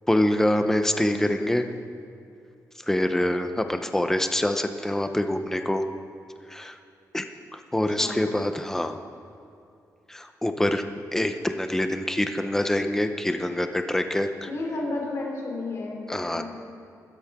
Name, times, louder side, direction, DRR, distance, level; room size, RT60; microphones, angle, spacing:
voice 1, 0.1-1.7 2.8-5.8 6.5-6.8 7.1-7.3 7.5-9.0 10.1-10.8 11.1-14.5 16.1-16.4, left 1 dB, 5° left, 7 dB, 0.8 m, -25 dB
voice 2, 7.7-8.2 14.5-16.4, left 2 dB, 50° left, -1 dB, 3.4 m, -33 dB
25.0 x 13.0 x 3.7 m, 2.6 s
wide cardioid pair, 175°, 6 cm